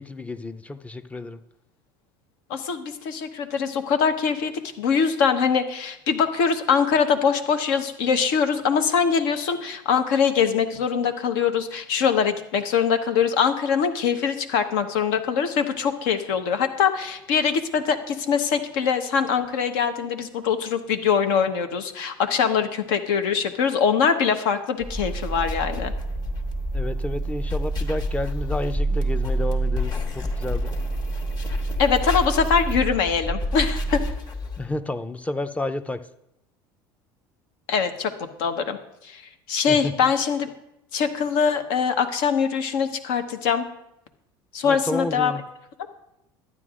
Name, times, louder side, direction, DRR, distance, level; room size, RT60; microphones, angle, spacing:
voice 1, 0.0-1.4 26.7-30.7 34.6-36.0 39.7-39.9 44.6-45.4, left 2 dB, 10° left, 11 dB, 0.5 m, -30 dB
voice 2, 2.5-4.5 4.8-25.9 31.8-34.0 37.7-38.1 38.4-38.8 39.1-39.2 39.5-40.5 40.9-43.6 44.5-45.3, left 6 dB, 70° left, 7 dB, 1.0 m, -23 dB
sound 1, 24.8-34.7, right 1 dB, 35° left, 1.5 m, -27 dB
12.0 x 9.1 x 2.5 m, 0.84 s
hypercardioid pair, 80°, 12 cm